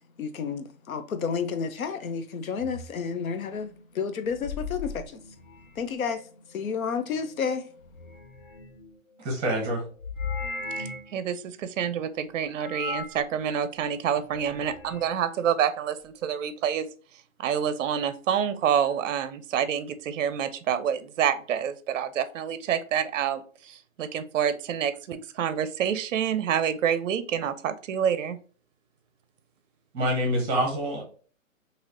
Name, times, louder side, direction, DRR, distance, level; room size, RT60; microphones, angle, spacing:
voice 1, 0.2-5.0 5.8-6.2 6.5-7.7, left 6 dB, 75° left, 0.7 m, -30 dB
sound 1, 2.6-2.9 4.3-5.9 7.8-8.9 10.0-11.1 12.6-13.2 14.2-15.1, left 4 dB, 40° left, 0.4 m, -37 dB
voice 2, 9.2-9.8 29.9-31.0, equal, 10° right, 0.9 m, -26 dB
voice 3, 10.7-16.9 17.4-28.4, right 8 dB, 65° right, 0.5 m, -27 dB
3.1 x 2.7 x 2.5 m
hypercardioid pair, 150°, 41 cm